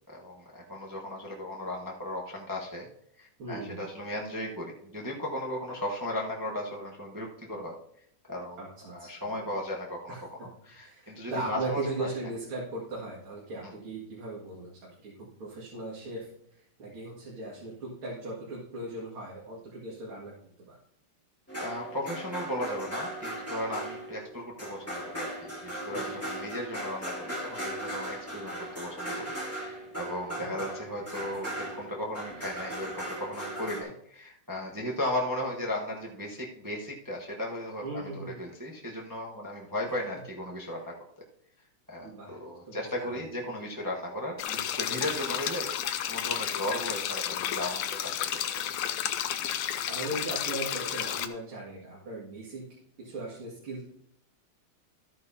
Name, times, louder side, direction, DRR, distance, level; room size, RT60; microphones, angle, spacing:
voice 1, 0.1-2.9 3.2-7.7 8.3-8.6 8.8-10.1 10.4-12.1 13.6-13.7 21.6-41.0 41.9-45.7 46.0-48.6, left 1 dB, 15° right, -2 dB, 0.8 m, -36 dB
voice 2, 3.4-3.9 8.6-9.4 10.1-10.2 10.8-15.1 15.4-16.3 16.8-20.8 25.9-26.1 30.3-30.8 31.2-31.3 37.8-38.4 42.0-42.4 42.7-43.5 44.9-45.1 49.9-52.6 53.0-53.8, right 2 dB, 75° right, -5 dB, 3.0 m, -38 dB
sound 1, 21.5-33.8, right 1 dB, 5° left, 2.5 m, -38 dB
sound 2, 44.4-51.3, left 10 dB, 85° left, 1.6 m, -32 dB
13.5 x 9.3 x 2.8 m, 0.73 s
omnidirectional pair, 2.3 m